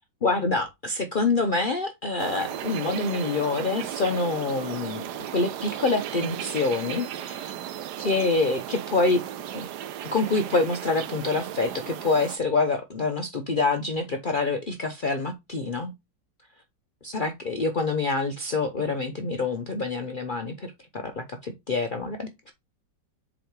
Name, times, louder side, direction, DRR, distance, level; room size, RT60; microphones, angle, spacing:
voice 1, 0.2-5.0 5.3-7.5 8.0-9.2 9.5-9.7 10.1-15.9 17.0-22.5, left 3 dB, 90° left, 0.4 m, -26 dB
sound 1, 2.2-12.4, right 11 dB, 70° right, 1.2 m, -35 dB
7.6 x 3.1 x 4.6 m
omnidirectional pair, 2.0 m